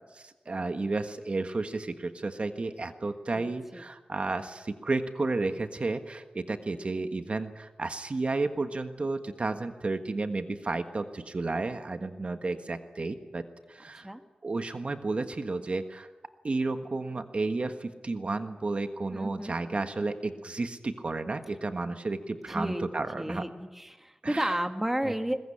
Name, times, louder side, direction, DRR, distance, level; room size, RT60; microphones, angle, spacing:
voice 1, 0.0-14.1 14.4-16.1 16.4-23.4 24.2-24.6 25.0-25.1, right 3 dB, 50° right, 7 dB, 1.5 m, -32 dB
voice 2, 3.3-3.8 13.9-14.2 19.1-19.5 22.5-22.8 23.1-25.4, right 1 dB, 10° right, 7 dB, 1.7 m, -32 dB
21.5 x 21.5 x 10.0 m, 1.2 s
wide cardioid pair, 95°, 3 cm